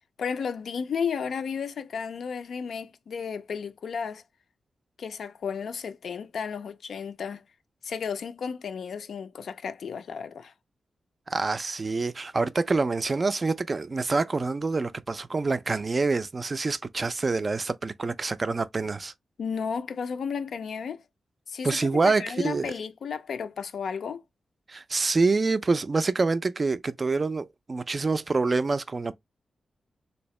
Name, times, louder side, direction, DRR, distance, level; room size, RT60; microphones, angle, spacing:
voice 1, 0.2-4.2 5.0-7.4 7.8-10.5 19.4-21.0 21.5-24.2, left 6 dB, 70° left, 0.4 m, -33 dB
voice 2, 11.3-19.1 21.6-22.7 24.7-29.1, right 3 dB, 30° right, 0.3 m, -26 dB
3.5 x 2.8 x 3.1 m
wide cardioid pair, 155°, 0 cm